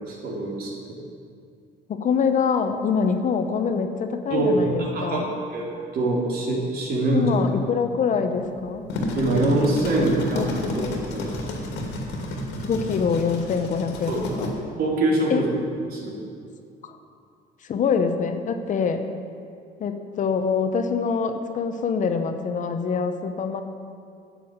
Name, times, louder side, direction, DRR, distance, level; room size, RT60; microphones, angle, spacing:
voice 1, 0.1-0.7 4.3-4.5 4.8-5.2 5.5-7.3 9.1-10.4 10.7-10.8 11.1-11.6 14.1-14.2 14.8-15.5 15.9-16.2, right 2 dB, 60° right, -2 dB, 3.2 m, -24 dB
voice 2, 1.9-5.3 7.1-8.8 10.0-11.0 12.6-14.5 15.3-15.4 16.8-16.9 17.6-19.1 19.8-23.6, left 6 dB, 50° left, 7 dB, 1.0 m, -25 dB
sound 1, 8.7-14.5, left 1 dB, 90° left, 2.3 m, -30 dB
10.5 x 7.0 x 8.7 m, 2.3 s
cardioid pair, 110°, 17 cm